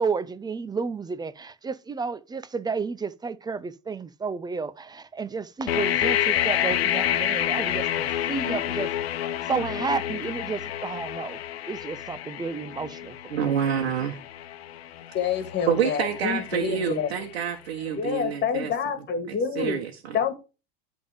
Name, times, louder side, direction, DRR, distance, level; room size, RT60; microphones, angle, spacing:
voice 1, 0.0-8.9 9.4-11.4 11.7-13.5, right 5 dB, 15° right, 0.6 m, -31 dB
sound 1, 5.7-17.5, left 11 dB, 85° left, 1.0 m, -29 dB
voice 2, 13.3-14.2 15.7-18.7 19.5-20.1, right 8 dB, 90° right, 1.4 m, -27 dB
voice 3, 15.1-17.1 18.0-19.8 20.1-20.3, left 6 dB, 35° left, 2.0 m, -27 dB
11.0 x 3.8 x 5.0 m
supercardioid pair, 110°, 30 cm